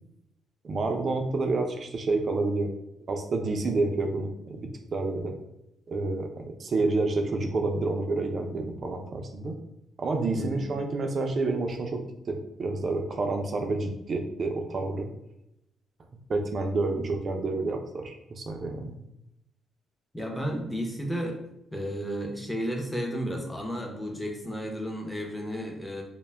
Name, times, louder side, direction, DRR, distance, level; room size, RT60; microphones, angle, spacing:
voice 1, 0.6-2.7 3.1-5.3 5.9-9.6 10.0-15.1 16.3-19.0, right 3 dB, 45° right, 4 dB, 0.4 m, -29 dB
voice 2, 20.1-21.4 21.7-26.0, equal, 5° left, 1 dB, 0.5 m, -33 dB
2.2 x 2.0 x 3.3 m, 0.84 s
cardioid pair, 95°, 0 cm